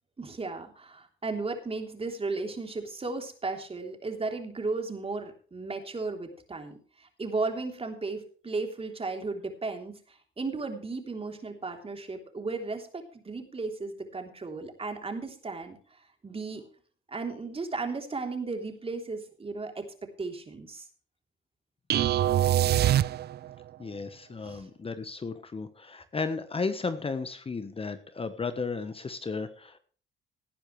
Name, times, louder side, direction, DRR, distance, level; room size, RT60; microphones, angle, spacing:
voice 1, 0.2-16.6 17.1-20.9 24.4-24.7, right 3 dB, 30° right, 4 dB, 3.4 m, -35 dB
sound 1, 21.9-23.6, right 12 dB, 55° right, 0.5 m, -24 dB
voice 2, 23.8-29.8, left 4 dB, 30° left, 11 dB, 1.1 m, -34 dB
18.0 x 10.0 x 3.2 m, 0.43 s
cardioid pair, 90°, 20 cm